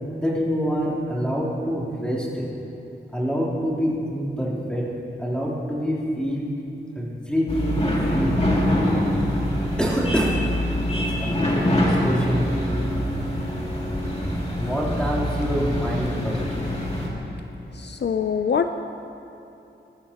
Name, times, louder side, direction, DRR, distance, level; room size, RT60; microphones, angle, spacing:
voice 1, 0.2-2.5 3.1-4.9 5.2-6.5 7.0-8.5 9.8-10.4 10.9-12.5 14.6-16.4, equal, 5° left, -6 dB, 3.5 m, -26 dB
sound 1, 7.5-17.1, equal, 30° left, 2.6 m, -24 dB
voice 2, 17.8-18.7, left 7 dB, 60° left, 7 dB, 0.5 m, -23 dB
19.5 x 13.5 x 2.9 m, 2.8 s
wide cardioid pair, 65°, 20 cm